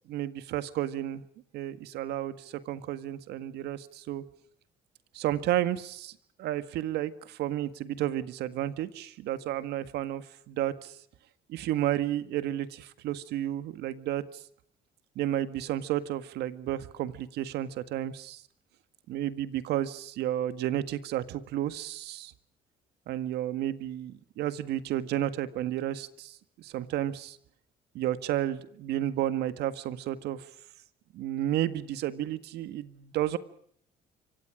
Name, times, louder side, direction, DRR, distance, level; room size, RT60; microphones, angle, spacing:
voice 1, 0.1-1.2 1.5-2.4 2.7-4.2 5.1-6.1 6.4-10.9 11.5-14.2 15.2-18.4 19.1-22.3 23.1-26.3 26.6-27.4 28.0-30.4 31.1-33.4, right 12 dB, 80° right, 12 dB, 1.8 m, -32 dB
28.0 x 25.0 x 5.0 m, 0.63 s
cardioid pair, 110°, 17 cm